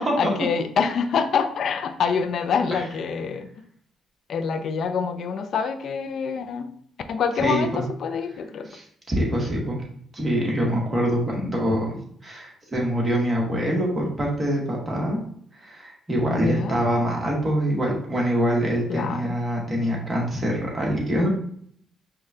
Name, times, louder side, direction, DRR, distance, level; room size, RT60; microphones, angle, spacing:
voice 1, 0.2-3.5 4.3-6.7 7.1-8.7 16.3-16.8 18.9-19.3, left 6 dB, 65° left, 8 dB, 0.4 m, -26 dB
voice 2, 7.4-7.8 8.7-9.8 10.1-15.2 15.6-21.3, equal, 25° right, -2 dB, 1.3 m, -25 dB
4.8 x 2.3 x 2.7 m, 0.62 s
cardioid pair, 90°, 0 cm